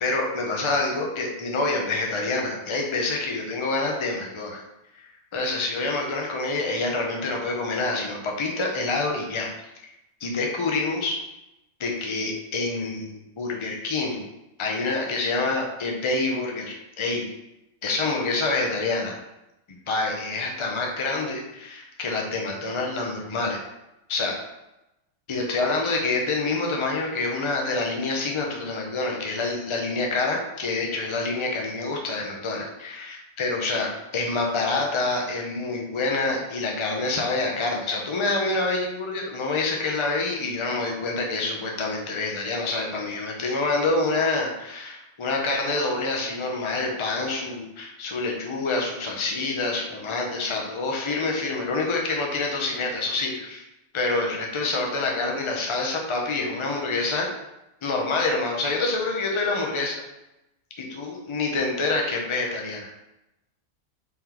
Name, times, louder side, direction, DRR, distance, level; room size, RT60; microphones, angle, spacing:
voice 1, 0.0-4.6 5.3-9.5 10.2-11.2 11.8-14.3 14.6-17.3 17.8-19.1 19.9-23.6 24.1-24.4 25.3-53.6 53.9-57.3 57.8-60.0 60.8-62.9, left 3 dB, 45° left, 0 dB, 0.3 m, -27 dB
3.8 x 3.3 x 2.9 m, 0.93 s
omnidirectional pair, 1.5 m